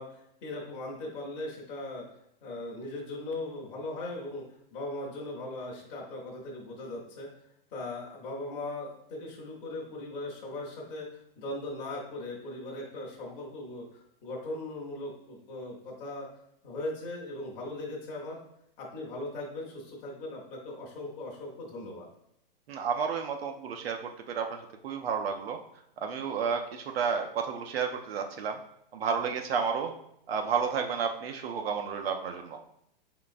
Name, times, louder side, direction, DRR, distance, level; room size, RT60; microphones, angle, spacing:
voice 1, 0.0-2.0 2.4-4.4 4.7-7.3 7.7-13.8 14.2-16.3 16.6-18.4 18.8-22.1, left 2 dB, 20° left, -4 dB, 0.7 m, -39 dB
voice 2, 22.7-24.6 24.8-25.6 26.0-28.6 28.9-29.9 30.3-32.7, right 6 dB, 85° right, 4 dB, 0.6 m, -31 dB
5.5 x 3.7 x 2.5 m, 0.74 s
hypercardioid pair, 170°, 29 cm